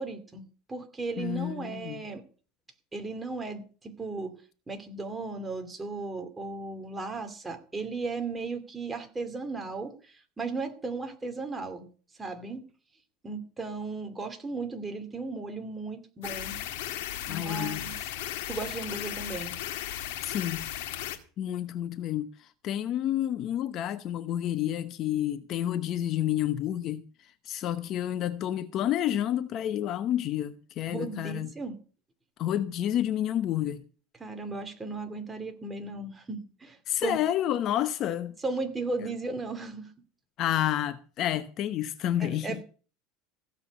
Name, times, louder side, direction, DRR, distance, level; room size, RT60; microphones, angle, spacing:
voice 1, 0.0-2.2 2.9-4.3 4.7-11.9 12.2-12.6 13.2-16.6 17.3-18.0 18.5-19.6 30.9-31.7 34.2-37.2 38.4-39.9 42.2-42.6, right 3 dB, 15° right, 2.5 m, -36 dB
voice 2, 1.2-2.0 17.3-17.8 20.2-20.7 21.4-27.0 27.4-31.5 32.4-33.8 36.9-38.4 39.0-39.1 40.4-42.6, left 11 dB, 40° left, 0.9 m, -29 dB
sound 1, 16.2-21.2, left 12 dB, 85° left, 2.1 m, -36 dB
16.0 x 7.5 x 7.2 m
supercardioid pair, 145°, 0 cm